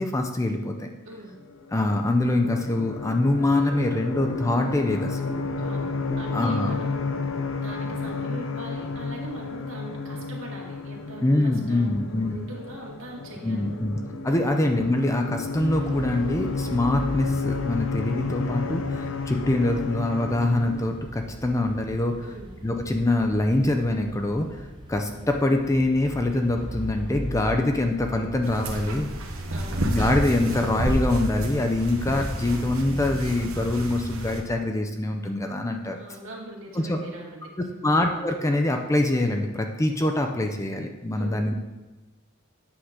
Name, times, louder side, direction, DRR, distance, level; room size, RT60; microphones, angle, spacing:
voice 1, 0.0-0.9 1.7-5.2 6.3-6.8 11.2-12.4 13.4-14.0 14.2-22.3 22.6-29.1 29.8-36.0 36.8-37.0 37.8-41.5, left 2 dB, 15° left, 4 dB, 0.5 m, -24 dB
sound 1, 1.4-20.9, left 3 dB, 65° left, 0.6 m, -32 dB
voice 2, 5.6-7.1 7.6-13.9 22.2-22.5 29.5-29.9 30.4-30.7 35.9-37.9 41.2-41.5, right 2 dB, 70° right, -2 dB, 1.9 m, -41 dB
sound 2, 15.5-34.0, equal, 20° right, 0.8 m, -39 dB
sound 3, 28.4-34.4, right 1 dB, 85° right, 1.1 m, -30 dB
8.6 x 3.8 x 6.5 m, 1.1 s
head